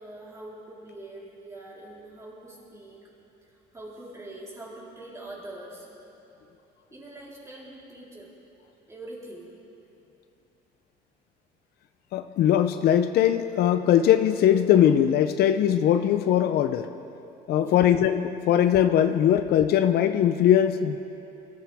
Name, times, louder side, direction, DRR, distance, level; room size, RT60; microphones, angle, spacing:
voice 1, 0.0-3.1 3.7-6.0 6.9-8.3 8.9-9.5 17.5-17.8, right 1 dB, 15° right, -5 dB, 4.0 m, -43 dB
voice 2, 12.1-16.9 17.5-21.0, left 10 dB, 70° left, 9 dB, 0.6 m, -21 dB
22.0 x 14.0 x 3.6 m, 2.9 s
cardioid pair, 110°, 17 cm